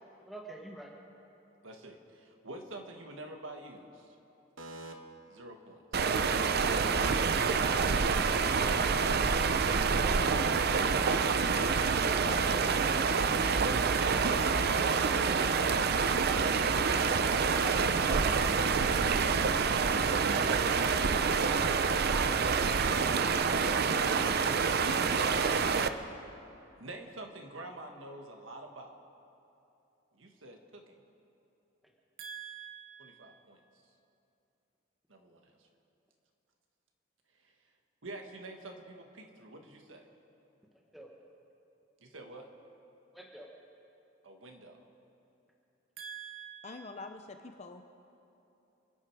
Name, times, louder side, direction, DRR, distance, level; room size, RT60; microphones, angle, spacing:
voice 1, 0.0-0.9 12.2-12.7 17.6-18.7 40.9-41.1 43.1-43.5, right 1 dB, ahead, -1 dB, 1.3 m, -45 dB
voice 2, 1.6-4.2 4.6-4.9 5.3-6.1 14.0-16.6 17.5-17.8 26.0-26.3 26.8-29.0 30.1-31.0 32.2-33.6 35.1-35.5 38.0-40.1 42.0-42.5 44.2-44.9 46.0-47.1, right 2 dB, 80° right, 3 dB, 1.7 m, -47 dB
sound 1, 5.9-25.9, right 5 dB, 55° right, 0.6 m, -27 dB
voice 3, 11.4-12.3 46.6-47.8, left 3 dB, 35° left, 7 dB, 0.6 m, -46 dB
28.5 x 10.5 x 4.7 m, 2.9 s
head